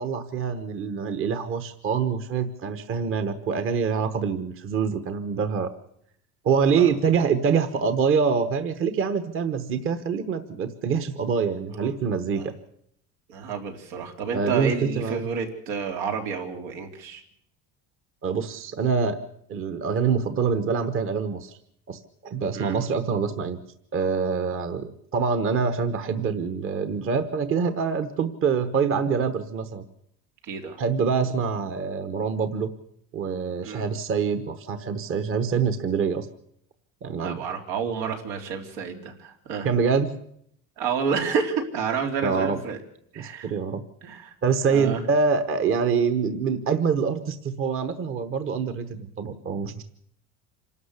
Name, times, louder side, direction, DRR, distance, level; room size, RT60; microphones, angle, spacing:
voice 1, 0.0-5.7 6.4-12.5 14.3-15.3 18.2-19.2 19.5-21.6 21.9-23.6 23.9-29.8 30.8-32.7 33.1-36.3 37.0-37.4 39.6-40.1 42.2-42.6 43.2-43.8 44.4-49.8, right 6 dB, 35° right, 10 dB, 1.2 m, -25 dB
voice 2, 13.3-17.2 22.5-22.8 30.4-30.8 33.6-33.8 37.2-39.7 40.8-42.8 43.1-43.5 44.0-44.3 44.7-45.0 49.2-49.4, right 6 dB, 85° right, 3 dB, 3.7 m, -30 dB
27.0 x 12.5 x 8.3 m, 0.72 s
cardioid pair, 160°, 35 cm